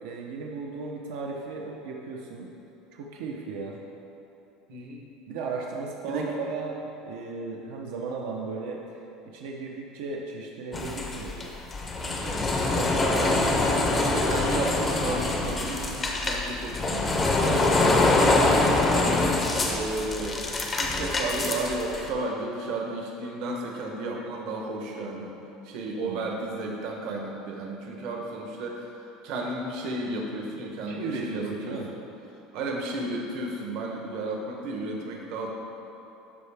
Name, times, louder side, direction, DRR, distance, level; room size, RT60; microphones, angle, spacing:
voice 1, 0.0-2.5 2.9-3.8 5.3-6.8 7.0-8.8 9.3-11.5 12.0-12.4 26.0-26.3 30.9-31.9, right 4 dB, 75° right, -1 dB, 0.7 m, -36 dB
voice 2, 4.7-5.0 6.0-6.3 8.1-8.2 12.7-13.5 13.9-18.3 18.9-19.3 19.6-25.3 25.6-28.8 29.2-32.0 32.5-35.5, right 2 dB, 50° right, 0 dB, 0.9 m, -33 dB
sound 1, 10.7-22.1, left 2 dB, 15° left, 0.5 m, -25 dB
12.5 x 4.7 x 3.5 m, 2.9 s
cardioid pair, 180°, 0 cm